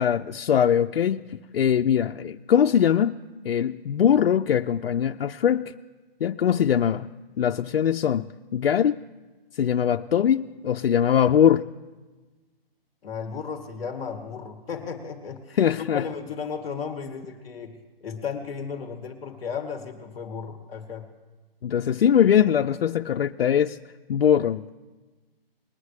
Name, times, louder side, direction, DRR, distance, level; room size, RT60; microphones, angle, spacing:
voice 1, 0.0-3.1 3.4-5.7 6.2-7.1 7.4-9.0 9.5-11.7 15.5-16.0 21.6-23.8 24.1-24.7, left 9 dB, 70° left, 5 dB, 0.5 m, -22 dB
voice 2, 13.0-21.0, left 6 dB, 5° left, -9 dB, 0.6 m, -34 dB
21.5 x 9.6 x 3.2 m, 1.3 s
hypercardioid pair, 175°, 30 cm